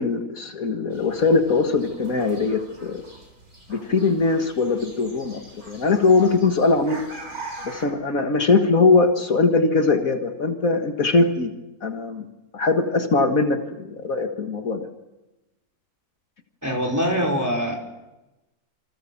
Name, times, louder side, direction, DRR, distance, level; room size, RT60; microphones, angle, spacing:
voice 1, 0.0-3.0 3.7-5.4 5.7-7.0 7.6-11.5 11.8-12.3 12.5-14.9, left 3 dB, 65° left, 5 dB, 2.1 m, -21 dB
sound 1, 0.9-7.9, right 2 dB, 70° right, 7.0 m, -42 dB
voice 2, 16.6-17.8, equal, 10° right, 1 dB, 5.1 m, -23 dB
28.5 x 26.5 x 7.2 m, 1.0 s
omnidirectional pair, 1.6 m